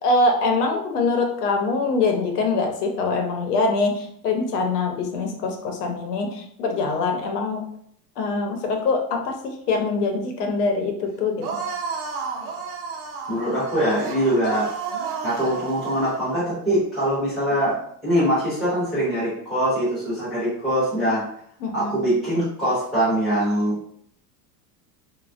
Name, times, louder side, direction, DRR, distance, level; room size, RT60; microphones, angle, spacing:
voice 1, 0.0-7.6 8.2-11.5 21.6-22.1, left 3 dB, 70° left, 3 dB, 0.8 m, -24 dB
sound 1, 11.4-16.3, right 5 dB, 65° right, 0.7 m, -31 dB
voice 2, 13.3-14.7 15.2-21.2 21.7-23.8, equal, ahead, -13 dB, 0.6 m, -23 dB
3.1 x 2.3 x 2.5 m, 0.66 s
supercardioid pair, 180°, 49 cm